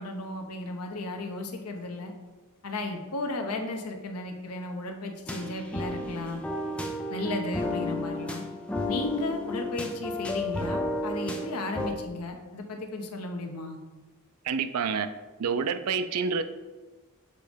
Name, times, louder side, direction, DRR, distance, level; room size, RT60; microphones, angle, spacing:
voice 1, 0.0-2.1 2.6-6.4 7.1-8.4 8.9-13.8, left 2 dB, 90° left, 4 dB, 0.8 m, -34 dB
sound 1, 5.3-11.9, left 1 dB, 5° left, 0.5 m, -32 dB
voice 2, 14.4-15.1 15.4-16.4, right 5 dB, 80° right, 10 dB, 0.4 m, -28 dB
6.8 x 3.1 x 5.1 m, 1.2 s
head